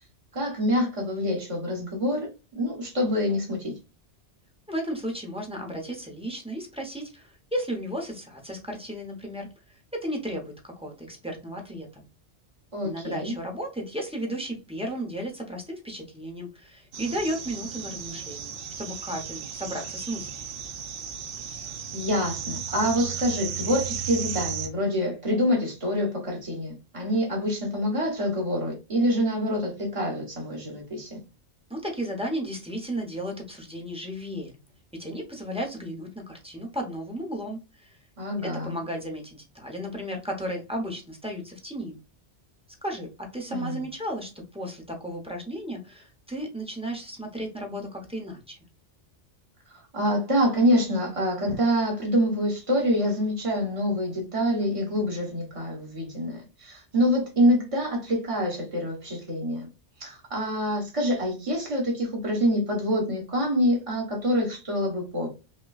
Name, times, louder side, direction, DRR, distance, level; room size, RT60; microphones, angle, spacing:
voice 1, 0.3-3.7 12.7-13.3 21.9-31.2 38.2-38.8 43.5-43.8 49.9-59.7 60.0-65.3, equal, 30° right, 1.3 m, -26 dB
voice 2, 4.7-12.0 12.8-20.5 31.7-34.5 35.0-38.0 38.4-42.0 42.8-48.6, equal, 5° right, 0.8 m, -34 dB
sound 1, 16.9-24.7, right 8 dB, 60° right, 0.7 m, -35 dB
5.5 x 2.2 x 2.4 m
omnidirectional pair, 1.2 m